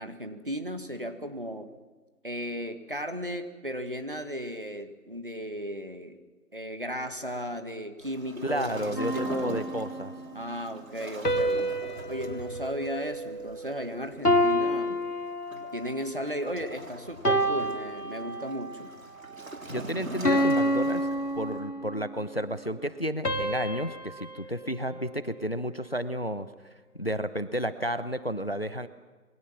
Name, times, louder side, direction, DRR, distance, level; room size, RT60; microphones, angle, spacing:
voice 1, 0.0-1.7 2.2-6.2 6.5-9.7 10.3-11.7 12.1-15.0 15.7-18.9, equal, 35° right, 7 dB, 1.8 m, -35 dB
Waves surf, 8.0-21.7, right 1 dB, 60° right, 3.7 m, -43 dB
voice 2, 8.4-10.1 19.7-21.1 21.4-26.5 27.0-28.9, equal, 40° left, 13 dB, 0.9 m, -32 dB
sound 1, 9.0-10.3 11.2-13.8 14.2-16.0 16.5-16.8 17.2-18.8 19.3-19.5 20.2-22.1 23.2-25.6, equal, 85° left, 2.8 m, -29 dB
27.5 x 23.5 x 5.8 m, 1.3 s
figure-of-eight pair, 180°, 45 cm